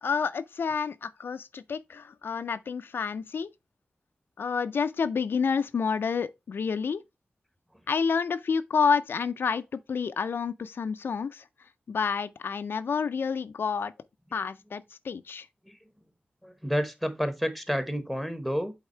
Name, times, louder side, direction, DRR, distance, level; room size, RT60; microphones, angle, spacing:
voice 1, 0.0-3.5 4.4-7.0 7.9-11.4 11.9-13.9 14.3-15.5, left 6 dB, 85° left, 0.4 m, -29 dB
voice 2, 16.4-18.7, equal, ahead, 1.1 m, -30 dB
8.1 x 3.6 x 4.4 m
wide cardioid pair, 130°, 4 cm